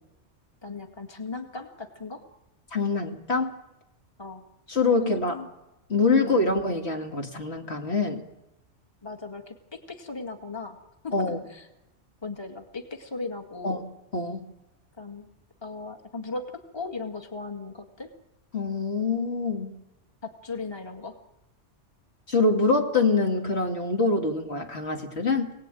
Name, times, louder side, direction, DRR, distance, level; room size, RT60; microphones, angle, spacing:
voice 1, 0.6-2.2 4.2-4.4 5.0-5.5 6.1-6.4 9.0-10.8 11.0-11.1 11.5-11.7 12.2-13.8 15.0-15.3 15.6-18.1 20.2-21.2, left 3 dB, 20° left, 4 dB, 2.0 m, -37 dB
voice 2, 2.7-3.6 4.7-5.4 5.9-8.2 11.1-11.4 13.6-13.8 14.1-14.5 18.5-19.7 22.3-25.5, left 3 dB, 60° left, 2 dB, 2.8 m, -25 dB
27.5 x 18.5 x 9.2 m, 0.94 s
omnidirectional pair, 1.2 m